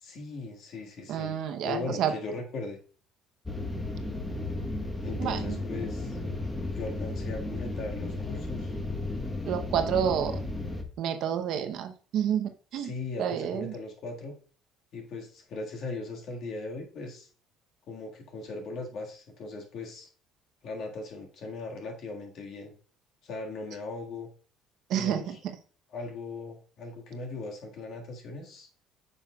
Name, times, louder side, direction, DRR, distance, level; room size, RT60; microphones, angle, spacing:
voice 1, 0.0-1.3 1.6-2.8 5.0-6.2 6.7-8.7 12.8-14.4 14.9-17.3 17.9-20.1 20.6-22.7 23.2-24.3 24.9-25.4 25.9-28.7, left 3 dB, 60° left, 1 dB, 1.7 m, -39 dB
voice 2, 1.1-2.1 5.2-5.6 9.5-10.4 11.0-12.9 13.2-13.7 24.9-25.2, right 9 dB, 65° right, 7 dB, 0.7 m, -29 dB
sound 1, 3.4-10.8, left 2 dB, 10° left, 1.0 m, -34 dB
8.7 x 5.6 x 2.3 m, 0.41 s
cardioid pair, 105°, 0 cm